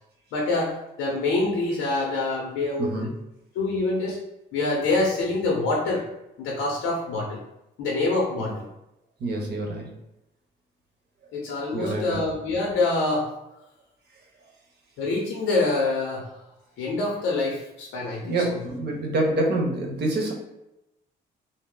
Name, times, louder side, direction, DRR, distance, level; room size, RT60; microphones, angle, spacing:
voice 1, 0.3-3.1 3.5-4.2 4.5-6.0 6.4-7.4 7.8-8.7 11.3-13.3 15.0-16.3 16.8-18.6, left 2 dB, 85° left, -2 dB, 0.6 m, -26 dB
voice 2, 2.8-3.2 8.4-8.5 9.2-9.9 11.7-12.3 18.2-20.3, right 2 dB, 55° right, 1 dB, 0.8 m, -27 dB
2.6 x 2.0 x 3.7 m, 0.89 s
cardioid pair, 90°, 20 cm